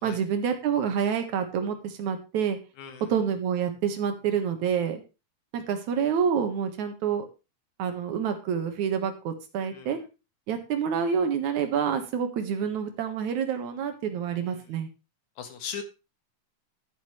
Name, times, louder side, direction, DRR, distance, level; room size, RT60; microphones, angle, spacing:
voice 1, 0.0-2.6 3.1-5.0 5.5-7.3 7.8-10.0 10.5-14.9, right 7 dB, 70° right, 7 dB, 2.8 m, -28 dB
voice 2, 2.8-3.1 9.7-10.0 14.5-14.6 15.4-15.8, left 7 dB, 70° left, 7 dB, 2.9 m, -39 dB
11.5 x 10.5 x 3.3 m, 0.29 s
omnidirectional pair, 3.5 m